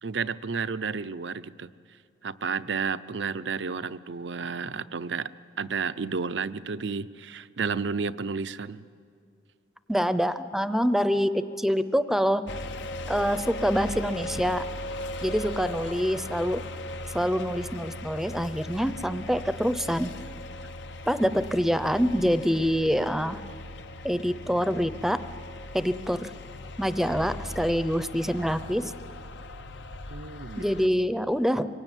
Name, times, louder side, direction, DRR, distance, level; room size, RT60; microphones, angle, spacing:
voice 1, 0.0-1.7 2.2-5.3 5.6-8.8 30.1-31.0, right 5 dB, 75° right, 13 dB, 0.6 m, -32 dB
voice 2, 9.9-12.4 13.1-14.6 15.2-16.6 17.1-20.1 21.1-23.4 24.0-25.2 25.7-26.3 26.8-28.9 30.6-31.7, equal, ahead, 12 dB, 0.7 m, -25 dB
sound 1, 12.5-30.9, left 1 dB, 75° left, 1.0 m, -38 dB
25.0 x 22.5 x 9.1 m, 2.3 s
head